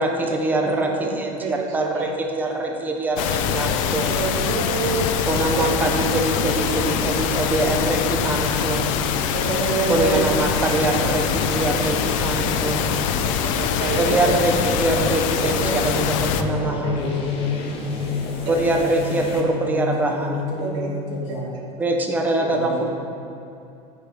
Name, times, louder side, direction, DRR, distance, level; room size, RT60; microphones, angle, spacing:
voice 1, 0.0-4.1 5.3-8.9 9.9-12.9 14.0-16.9 18.5-20.4 21.8-22.8, right 2 dB, 10° right, 2 dB, 0.6 m, -23 dB
voice 2, 0.6-1.1 1.4-2.1 2.6-2.7 4.0-5.2 5.5-5.7 6.0-6.2 6.6-6.7 7.6-7.7 9.3-10.3 13.2-14.3 15.6-16.0 16.9-17.0 20.6-20.9 21.6-21.7 22.4-22.5, right 5 dB, 75° right, 0 dB, 1.7 m, -28 dB
sound 1, 3.2-16.4, left 8 dB, 85° left, 0.6 m, -24 dB
sound 2, 3.4-19.4, left 3 dB, 35° left, 0.9 m, -33 dB
voice 3, 16.0-21.5 22.4-22.8, left 3 dB, 60° left, -3 dB, 2.3 m, -28 dB
14.0 x 6.1 x 3.4 m, 2.7 s
cardioid pair, 180°, 16 cm